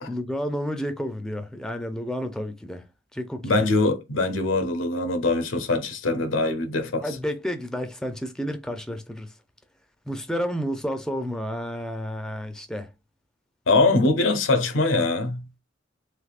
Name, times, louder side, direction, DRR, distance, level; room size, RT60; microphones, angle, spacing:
voice 1, 0.1-2.9 3.1-3.6 7.0-9.3 10.1-12.9, equal, 5° left, 0.4 m, -31 dB
voice 2, 3.4-7.0 13.7-15.4, left 2 dB, 80° left, 0.6 m, -22 dB
3.3 x 3.0 x 2.3 m
head